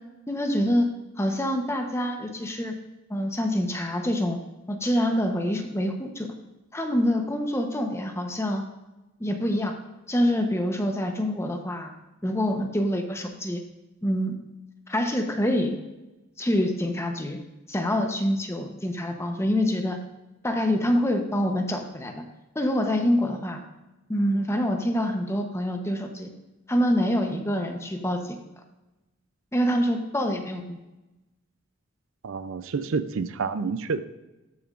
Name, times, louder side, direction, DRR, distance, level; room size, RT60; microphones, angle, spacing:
voice 1, 0.3-0.9 1.2-2.7 3.1-4.4 4.7-6.3 6.7-8.6 9.2-9.8 10.1-11.9 12.2-13.6 14.0-14.4 14.9-15.8 16.4-17.4 17.7-20.0 20.4-22.2 22.5-23.6 24.1-26.3 26.7-28.4 29.5-30.8, equal, 15° left, 4 dB, 0.8 m, -26 dB
voice 2, 32.2-34.0, right 4 dB, 75° right, 12 dB, 0.5 m, -29 dB
13.0 x 6.9 x 2.5 m, 1.0 s
head